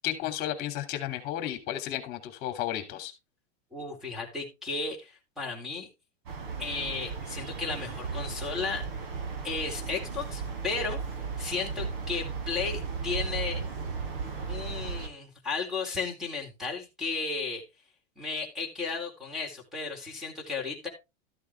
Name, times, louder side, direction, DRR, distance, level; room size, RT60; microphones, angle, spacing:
voice 1, 0.0-3.1, left 12 dB, 30° left, 8 dB, 3.0 m, -33 dB
voice 2, 3.7-5.9 6.6-8.8 9.4-11.0 11.4-13.6 14.5-17.6 18.2-20.9, left 4 dB, ahead, 3 dB, 3.7 m, -34 dB
sound 1, 6.3-15.1, right 5 dB, 55° right, 3.5 m, -35 dB
13.5 x 8.3 x 3.6 m, 0.26 s
supercardioid pair, 175°, 33 cm